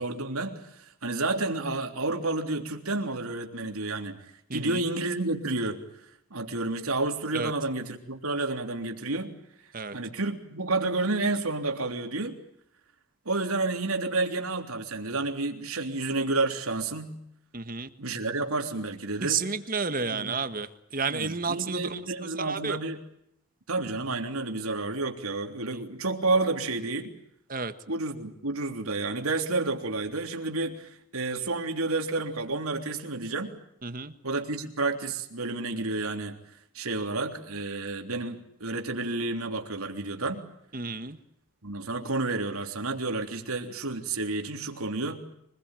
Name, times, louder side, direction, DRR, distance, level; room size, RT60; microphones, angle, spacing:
voice 1, 0.0-4.2 4.5-5.8 6.3-9.3 9.9-12.4 13.3-17.2 18.0-19.4 20.1-20.4 21.1-23.0 23.7-27.1 27.9-33.5 34.2-36.4 36.8-40.4 41.6-45.2, right 2 dB, 85° right, 3.4 m, -30 dB
voice 2, 4.5-4.8 7.3-7.5 9.7-10.0 17.5-17.9 19.2-22.0 22.3-22.8 25.7-25.8 27.5-27.7 33.8-34.1 40.7-41.2, right 4 dB, 40° right, 1.5 m, -31 dB
25.5 x 21.0 x 9.1 m
head